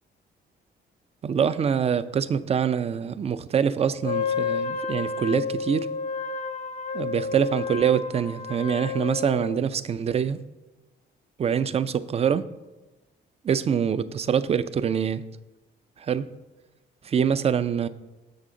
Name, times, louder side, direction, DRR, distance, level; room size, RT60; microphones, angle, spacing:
voice 1, 1.2-5.9 6.9-10.4 11.4-12.5 13.4-15.2 16.0-16.3 17.0-17.9, right 7 dB, 30° right, 14 dB, 0.3 m, -25 dB
Wind instrument woodwind instrument, 4.0-9.6, left 5 dB, 35° left, 0.6 m, -31 dB
6.7 x 6.3 x 3.7 m, 1.1 s
cardioid pair, 90°, 20 cm